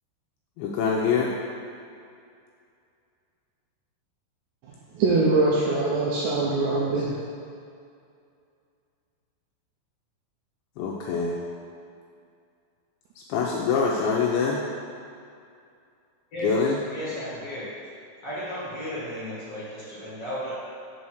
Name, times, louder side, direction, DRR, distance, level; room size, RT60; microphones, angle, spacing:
voice 1, 0.6-1.3 10.8-11.4 13.3-14.6 16.4-16.8, left 5 dB, 85° left, -2 dB, 2.7 m, -24 dB
voice 2, 4.9-7.1, right 3 dB, 80° right, -5 dB, 2.5 m, -22 dB
voice 3, 16.3-17.7 18.2-20.5, equal, 45° left, -11 dB, 2.1 m, -34 dB
7.0 x 4.2 x 6.3 m, 2.4 s
omnidirectional pair, 5.8 m